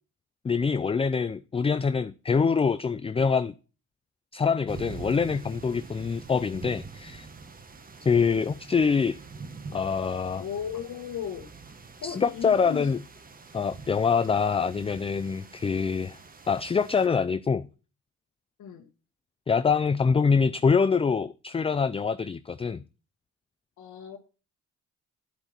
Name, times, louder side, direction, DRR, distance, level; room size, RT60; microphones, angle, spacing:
voice 1, 0.4-3.5 4.3-7.3 8.0-9.2 9.7-10.4 12.0-13.0 13.5-16.2 16.5-17.7 19.5-22.8, left 5 dB, 20° left, 0.4 m, -25 dB
sound 1, 4.7-17.1, right 4 dB, 30° right, 1.2 m, -45 dB
voice 2, 10.4-11.4 12.0-12.9 18.6-18.8 23.8-24.2, left 8 dB, 75° left, 1.6 m, -35 dB
10.5 x 8.0 x 4.4 m
cardioid pair, 90°, 30 cm